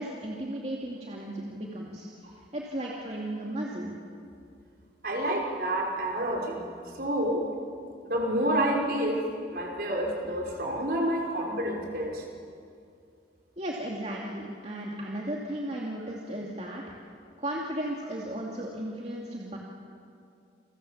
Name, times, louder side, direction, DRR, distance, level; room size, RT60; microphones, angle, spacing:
voice 1, 0.0-3.9 13.6-16.8 17.4-19.6, right 1 dB, 40° right, -2 dB, 2.6 m, -35 dB
voice 2, 5.0-6.7 7.0-7.5 8.0-9.2 9.5-12.2, right 1 dB, 55° right, 0 dB, 5.5 m, -28 dB
29.5 x 25.5 x 7.4 m, 2.4 s
head